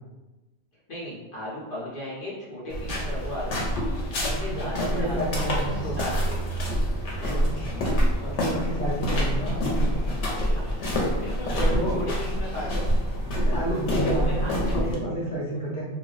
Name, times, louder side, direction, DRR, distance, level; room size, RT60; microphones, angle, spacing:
voice 1, 0.9-3.6 4.2-6.4 7.2-7.3 9.1-9.3 11.1-12.9 14.0-15.0, left 1 dB, 50° left, -8 dB, 1.0 m, -36 dB
sound 1, 2.7-14.9, equal, 85° left, 1.0 m, -26 dB
voice 2, 4.3-5.9 7.2-7.9 8.2-10.2 11.5-11.9 13.3-15.9, right 1 dB, 5° left, -9 dB, 0.7 m, -31 dB
2.3 x 2.1 x 3.9 m, 1.1 s
omnidirectional pair, 1.2 m